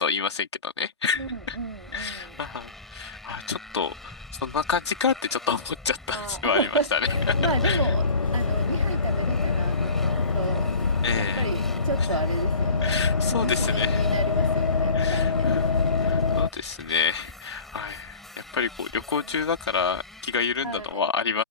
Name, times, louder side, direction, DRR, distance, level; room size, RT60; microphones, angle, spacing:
voice 1, 0.0-1.6 1.9-7.4 7.6-7.9 11.0-11.5 12.8-14.1 14.9-15.7 16.0-18.2 18.5-21.4, left 5 dB, 55° left, 4.0 m, -28 dB
Motorcycle, 1.1-20.9, left 1 dB, ahead, 6.7 m, -45 dB
voice 2, 1.1-2.4 6.1-8.1 8.3-10.7 11.1-13.0 13.3-15.8 19.2-19.3 20.6-21.1, right 4 dB, 85° right, 4.4 m, -32 dB
sound 1, 7.1-16.5, left 4 dB, 85° left, 1.3 m, -24 dB
hypercardioid pair, 160°, 17 cm